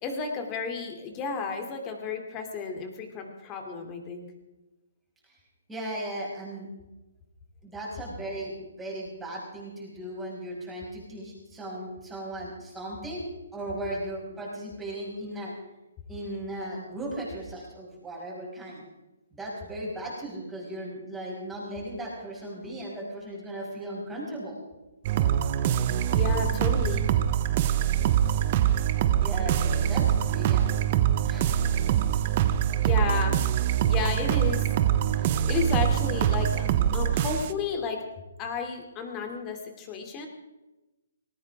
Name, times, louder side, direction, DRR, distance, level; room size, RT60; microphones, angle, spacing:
voice 1, 0.0-4.3 26.1-27.1 32.8-34.7 35.1-38.0 38.4-40.3, left 5 dB, 20° left, 4 dB, 2.8 m, -32 dB
voice 2, 5.7-6.7 7.6-13.2 13.5-15.5 16.1-18.8 19.3-24.6 29.2-31.0 31.2-31.5, right 1 dB, 5° right, -5 dB, 6.0 m, -37 dB
sound 1, 25.0-37.5, right 10 dB, 35° right, 0.9 m, -24 dB
19.5 x 18.5 x 3.6 m, 1.0 s
hypercardioid pair, 160°, 0 cm